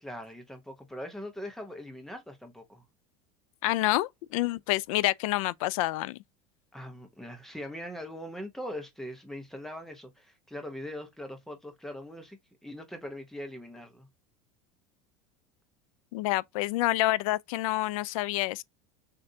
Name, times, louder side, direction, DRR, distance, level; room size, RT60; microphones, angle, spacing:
voice 1, 0.0-2.8 6.7-14.1, equal, ahead, 0.9 m, -41 dB
voice 2, 3.6-6.2 16.1-18.6, left 17 dB, 75° left, 0.4 m, -28 dB
6.5 x 2.7 x 2.7 m
supercardioid pair, 160°, 17 cm